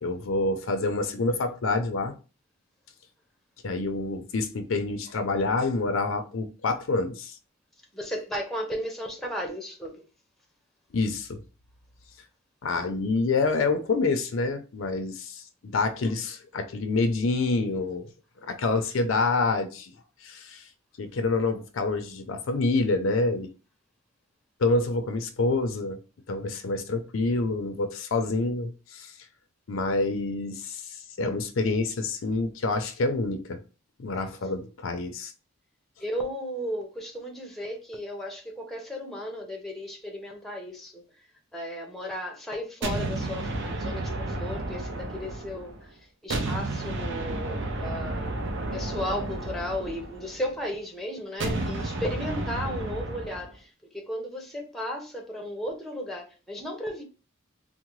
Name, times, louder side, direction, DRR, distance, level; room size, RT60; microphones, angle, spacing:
voice 1, 0.0-2.2 3.6-7.3 10.9-11.4 12.6-18.1 18.4-19.9 20.2-20.6 21.0-23.5 24.6-26.0 26.3-29.1 29.7-33.6 34.0-35.3, left 3 dB, 70° left, 0.5 m, -27 dB
voice 2, 7.9-10.0 36.0-48.4 48.7-57.0, equal, ahead, 0.7 m, -35 dB
sound 1, 42.8-45.8 46.3-50.5 51.4-53.5, right 2 dB, 60° right, 0.6 m, -32 dB
3.7 x 2.0 x 3.0 m
head